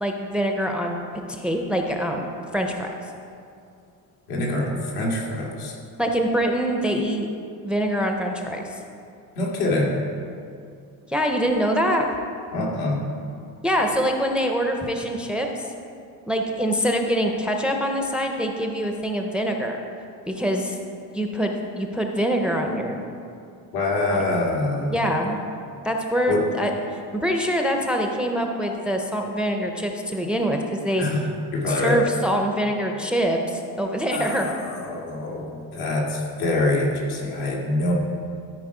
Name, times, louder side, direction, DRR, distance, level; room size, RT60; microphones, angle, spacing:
voice 1, 0.0-1.0 1.3-2.9 6.0-7.3 7.6-8.7 11.1-12.1 13.6-15.7 16.3-19.8 20.3-20.8 21.1-23.0 24.9-25.4 25.8-31.0 31.7-34.5, equal, 5° right, 3 dB, 0.5 m, -24 dB
voice 2, 4.3-5.8 9.4-9.9 12.5-13.0 23.7-25.0 26.3-26.4 31.0-31.2 31.5-32.0 34.1-34.5 34.8-37.9, left 2 dB, 85° left, -3 dB, 2.2 m, -25 dB
13.0 x 4.9 x 4.8 m, 2.4 s
cardioid pair, 145°, 38 cm